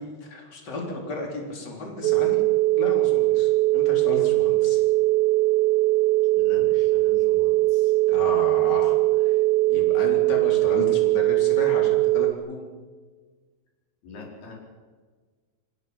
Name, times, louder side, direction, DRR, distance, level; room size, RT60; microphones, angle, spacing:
voice 1, 0.0-2.4 2.8-4.8 8.1-9.0 9.2-9.4 9.7-12.7, left 2 dB, 25° left, 0 dB, 4.3 m, -34 dB
sound 1, 2.0-12.3, right 18 dB, 75° right, 2.2 m, -20 dB
voice 2, 6.3-8.0 14.0-14.5, left 3 dB, 60° left, -2 dB, 6.7 m, -44 dB
29.0 x 17.5 x 5.9 m, 1.5 s
omnidirectional pair, 5.2 m